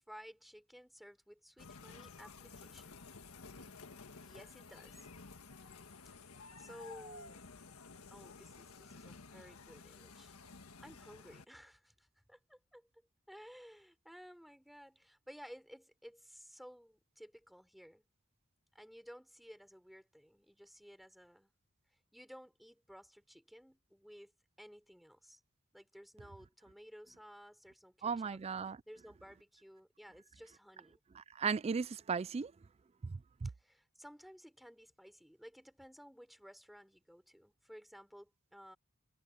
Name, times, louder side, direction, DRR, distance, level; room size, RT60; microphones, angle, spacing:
voice 1, 0.0-3.0 4.2-5.1 6.1-7.4 8.1-10.3 10.8-12.9 13.3-18.1 18.7-21.5 22.1-24.3 24.6-25.4 25.7-28.4 28.6-31.0 33.4-38.8, equal, ahead, 4.6 m, -56 dB
sound 1, 1.6-11.4, left 4 dB, 85° left, 1.5 m, -53 dB
voice 2, 28.0-28.8 31.2-32.5 33.0-33.5, right 5 dB, 30° right, 0.3 m, -36 dB
head